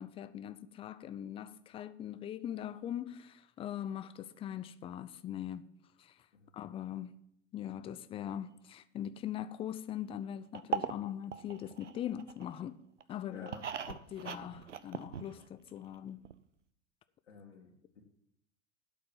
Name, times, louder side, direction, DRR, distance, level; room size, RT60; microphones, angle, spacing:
voice 1, 0.0-5.7 6.0-6.3 6.5-7.2 7.5-12.8 13.1-13.5 13.9-16.3, left 10 dB, 15° left, 0.4 m, -41 dB
sound 1, 10.5-12.6 13.0-15.7 15.9-16.0 16.2-16.3, right 7 dB, 85° right, 0.6 m, -40 dB
voice 2, 13.3-13.7 17.3-18.0, left 5 dB, 75° left, 1.9 m, -52 dB
12.0 x 4.6 x 7.3 m
figure-of-eight pair, 85°, 35 cm